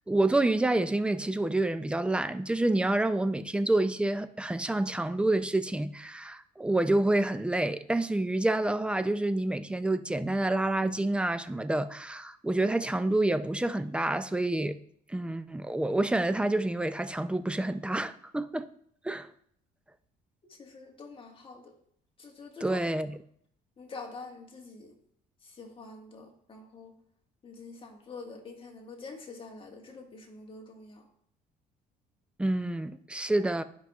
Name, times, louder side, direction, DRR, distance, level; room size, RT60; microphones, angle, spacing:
voice 1, 0.1-14.8 15.1-18.7 19.0-19.3 22.6-23.2 32.4-33.6, right 2 dB, 5° right, 0.4 m, -28 dB
voice 2, 20.6-21.7 22.2-22.8 23.8-24.9 25.6-26.9 27.4-31.0, left 3 dB, 30° left, 1.6 m, -46 dB
12.0 x 5.4 x 2.4 m
cardioid pair, 110°, 17 cm